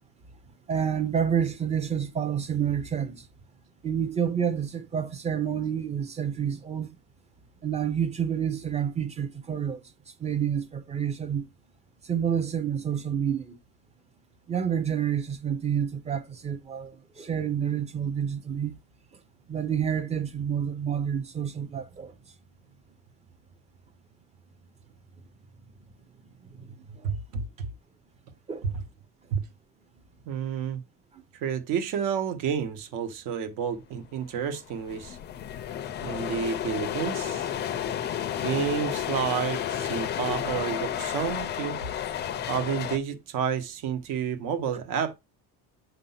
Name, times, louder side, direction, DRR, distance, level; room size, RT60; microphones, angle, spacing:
voice 1, 0.7-3.2 3.8-6.9 7.6-9.8 10.2-11.5 12.1-13.6 14.5-16.9 17.2-18.7 19.5-22.1 28.5-28.7, right 8 dB, 20° right, 0.6 m, -28 dB
voice 2, 27.0-27.4 28.6-28.7 29.3-29.4 30.3-30.8 31.3-35.2 36.0-37.5 38.4-41.8 42.5-45.1, right 7 dB, 60° right, 1.3 m, -30 dB
sound 1, 34.2-34.3 34.5-43.0, left 10 dB, 30° left, 0.4 m, -32 dB
6.9 x 2.6 x 5.6 m
cardioid pair, 180°, 36 cm